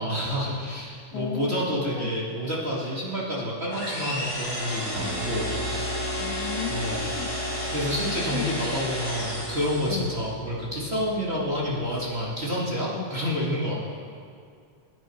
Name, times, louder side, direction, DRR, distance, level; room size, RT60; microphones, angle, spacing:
voice 1, 0.0-6.0 6.7-7.1 7.7-13.8, equal, 25° right, -6 dB, 2.0 m, -29 dB
voice 2, 1.1-2.1 6.2-7.3 8.3-8.5 9.9-10.1 12.9-13.1, left 9 dB, 85° left, 7 dB, 2.2 m, -34 dB
sound 1, 3.7-10.2, left 1 dB, 70° left, 5.4 m, -33 dB
sound 2, 4.9-12.5, equal, 85° right, 2.7 m, -36 dB
20.5 x 9.4 x 4.5 m, 2.3 s
omnidirectional pair, 3.4 m